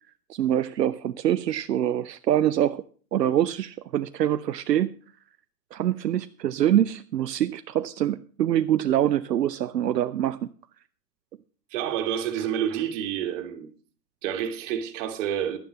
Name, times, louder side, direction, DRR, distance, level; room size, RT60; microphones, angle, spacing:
voice 1, 0.3-2.8 3.1-4.9 5.7-10.4, right 11 dB, 85° right, 0.6 m, -24 dB
voice 2, 11.7-13.7 14.2-15.6, right 9 dB, 50° right, 1.9 m, -29 dB
11.0 x 9.2 x 5.6 m
hypercardioid pair, 115°, 48 cm